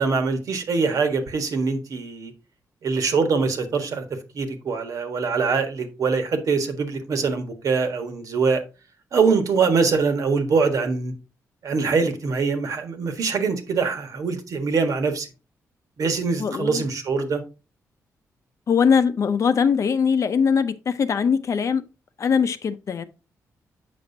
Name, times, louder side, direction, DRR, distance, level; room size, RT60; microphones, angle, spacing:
voice 1, 0.0-2.3 2.8-4.0 4.3-8.6 9.1-11.1 11.6-15.3 16.0-17.4, right 4 dB, 65° right, 1.6 m, -23 dB
voice 2, 16.4-16.9 18.7-21.8 22.2-23.0, left 6 dB, 55° left, 0.7 m, -21 dB
7.7 x 6.1 x 2.7 m
cardioid pair, 110°, 6 cm